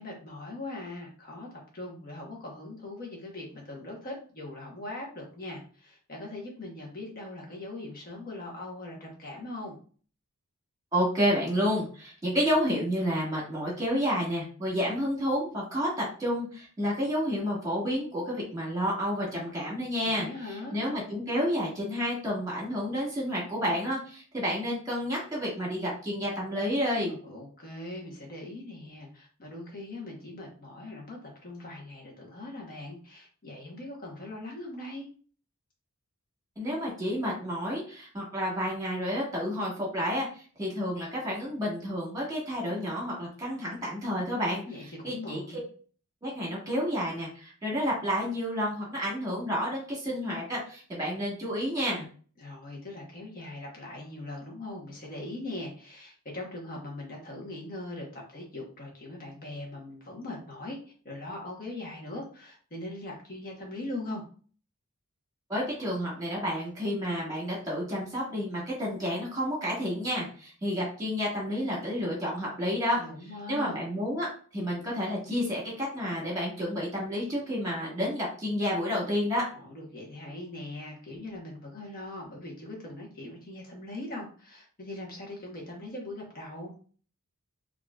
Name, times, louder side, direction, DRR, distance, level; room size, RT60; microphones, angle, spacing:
voice 1, 0.0-1.5 1.7-9.8 20.0-20.8 27.0-35.1 44.7-45.6 52.4-60.8 61.0-64.2 73.0-73.7 79.5-86.7, left 2 dB, 40° left, -1 dB, 1.0 m, -41 dB
voice 2, 10.9-15.9 16.2-27.1 36.6-40.3 40.6-44.6 45.0-45.6 46.2-52.0 65.5-73.0 73.5-74.3 74.5-79.4, equal, 15° right, -3 dB, 1.4 m, -30 dB
3.7 x 2.5 x 2.3 m, 0.41 s
head